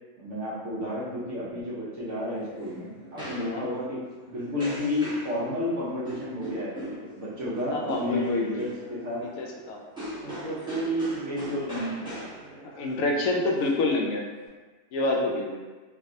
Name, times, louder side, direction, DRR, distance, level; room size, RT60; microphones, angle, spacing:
voice 1, 0.2-6.8 7.2-9.3 10.2-12.1, left 1 dB, 60° right, -6 dB, 1.0 m, -31 dB
sound 1, 2.0-14.5, equal, 5° right, 0.8 m, -41 dB
voice 2, 3.2-3.6 7.7-8.7 9.4-9.8 12.8-14.3 14.9-15.6, left 2 dB, 85° left, -1 dB, 1.0 m, -27 dB
3.4 x 2.3 x 2.6 m, 1.3 s
omnidirectional pair, 1.4 m